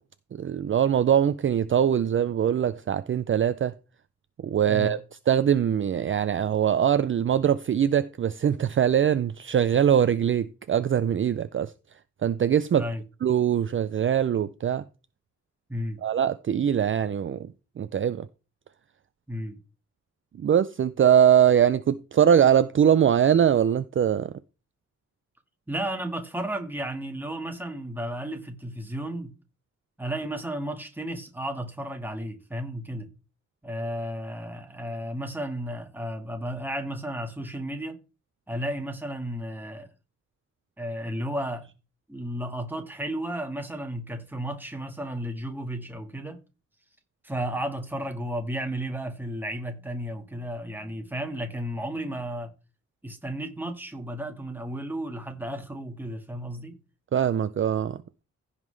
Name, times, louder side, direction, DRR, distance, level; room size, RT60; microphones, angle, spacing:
voice 1, 0.4-3.7 4.4-5.0 5.3-11.7 12.2-12.8 13.2-14.8 16.0-18.3 20.4-24.3 57.1-58.2, right 9 dB, 45° right, 0.4 m, -22 dB
voice 2, 19.3-19.6 25.7-29.3 30.0-33.1 33.6-38.0 38.5-39.9 40.8-41.7 42.1-46.4 47.2-52.5 53.0-56.8, right 1 dB, 5° right, 1.7 m, -33 dB
15.5 x 5.7 x 3.3 m
wide cardioid pair, 140°, 29 cm